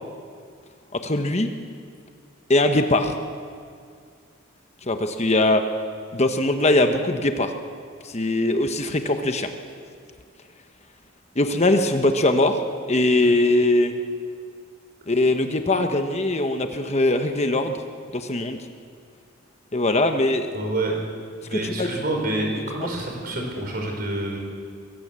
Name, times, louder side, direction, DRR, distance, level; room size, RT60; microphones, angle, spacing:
voice 1, 0.9-1.5 2.5-3.2 4.9-5.6 6.1-7.5 8.0-9.5 11.4-12.6 12.9-13.9 15.1-17.8 18.1-18.6 19.7-20.5 21.5-21.9, left 2 dB, 30° left, 6 dB, 1.1 m, -21 dB
voice 2, 20.5-21.0 21.4-24.4, right 2 dB, 45° right, 1 dB, 4.8 m, -27 dB
23.5 x 16.0 x 7.6 m, 2.1 s
head